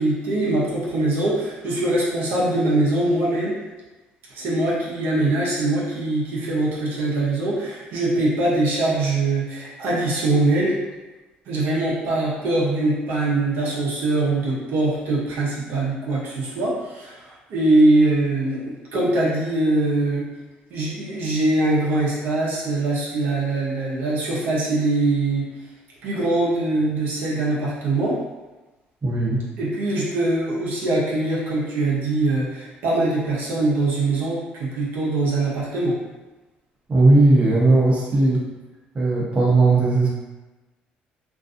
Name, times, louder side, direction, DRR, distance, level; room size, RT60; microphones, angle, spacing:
voice 1, 0.0-3.5 4.3-10.7 11.5-20.2 20.7-25.4 26.0-28.2 29.6-35.9, right 2 dB, 75° right, -6 dB, 0.7 m, -22 dB
voice 2, 29.0-29.4 36.9-38.4 38.9-40.1, right 2 dB, 35° right, -5 dB, 0.8 m, -17 dB
2.5 x 2.3 x 2.5 m, 1.1 s
supercardioid pair, 80°, 4 cm